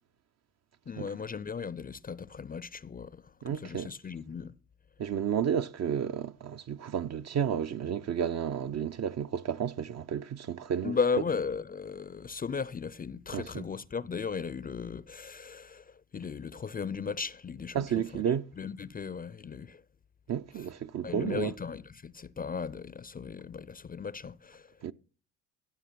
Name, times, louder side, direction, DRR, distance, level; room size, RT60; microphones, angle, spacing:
voice 1, 0.9-4.5 10.8-18.2 18.6-19.8 21.0-24.7, left 5 dB, 20° left, 0.5 m, -36 dB
voice 2, 3.4-3.9 5.0-11.0 13.3-13.7 17.7-18.5 20.3-21.5 24.8-24.9, right 8 dB, 40° right, 0.6 m, -32 dB
16.0 x 6.7 x 5.9 m
hypercardioid pair, 70°, 40 cm